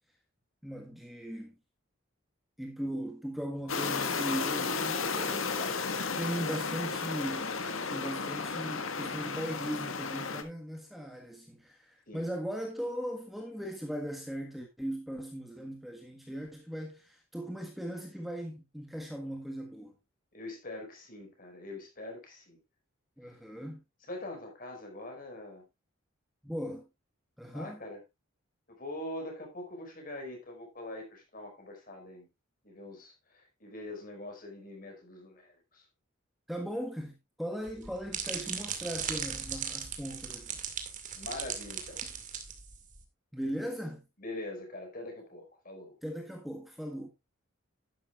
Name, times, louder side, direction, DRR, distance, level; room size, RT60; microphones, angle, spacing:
voice 1, 0.6-1.6 2.6-5.6 6.2-7.6 7.9-20.0 23.2-23.8 26.4-26.9 27.4-27.8 36.5-40.6 43.3-44.0 46.0-47.1, equal, ahead, 1.5 m, -38 dB
Rushing River Water, 3.7-10.4, left 4 dB, 80° left, 1.7 m, -33 dB
voice 2, 20.3-22.6 24.1-25.6 27.5-28.0 28.7-32.3 32.6-35.9 37.7-37.8 41.1-42.0 44.2-46.0, left 1 dB, 45° left, 5.3 m, -43 dB
sound 1, 37.6-43.0, right 7 dB, 40° right, 2.2 m, -38 dB
12.0 x 11.0 x 2.4 m
head